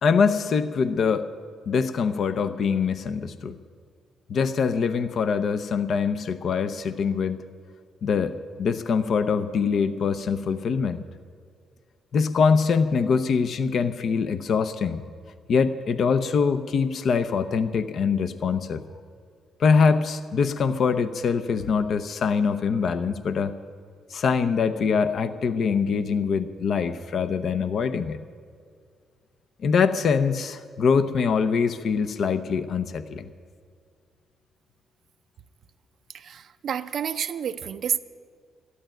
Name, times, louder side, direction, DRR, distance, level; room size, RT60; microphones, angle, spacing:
voice 1, 0.0-1.3 1.7-3.6 4.3-7.4 8.0-11.0 12.1-15.0 15.5-18.8 19.6-23.6 24.1-28.2 29.6-33.3, left 5 dB, 60° left, 10 dB, 0.6 m, -23 dB
voice 2, 36.1-38.0, right 8 dB, 60° right, 9 dB, 0.5 m, -29 dB
13.0 x 11.0 x 9.1 m, 2.1 s
cardioid pair, 90°, 0 cm